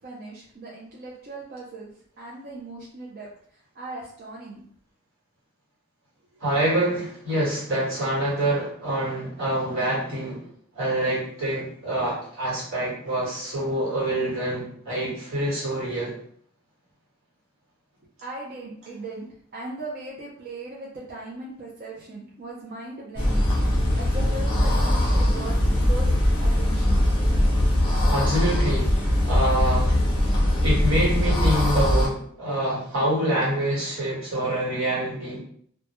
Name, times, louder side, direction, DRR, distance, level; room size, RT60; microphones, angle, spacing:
voice 1, 0.0-1.9 2.2-3.3 3.7-4.6 18.2-19.3 19.5-26.1 26.4-27.0, right 2 dB, 45° right, -5 dB, 0.4 m, -38 dB
voice 2, 6.4-10.4 10.7-16.1 28.1-30.0 30.6-35.4, right 1 dB, 80° right, -6 dB, 1.2 m, -26 dB
sound 1, 23.2-32.1, left 1 dB, 25° left, 0.5 m, -21 dB
2.1 x 2.1 x 2.9 m, 0.62 s
head